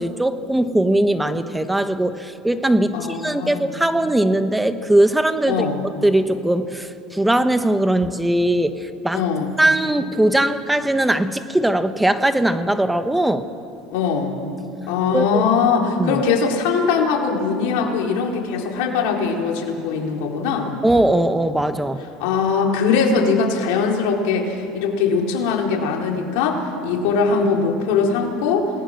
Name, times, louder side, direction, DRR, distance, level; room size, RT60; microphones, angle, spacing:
voice 1, 0.0-5.7 6.0-9.2 9.6-13.5 15.1-15.4 16.0-16.2 20.8-22.0, right 1 dB, 5° right, 10 dB, 1.2 m, -20 dB
voice 2, 2.9-3.7 5.5-5.8 9.1-9.5 13.9-14.3 14.9-20.7 22.2-28.7, left 5 dB, 75° left, 0 dB, 4.0 m, -21 dB
28.5 x 19.5 x 6.6 m, 2.6 s
supercardioid pair, 110°, 0 cm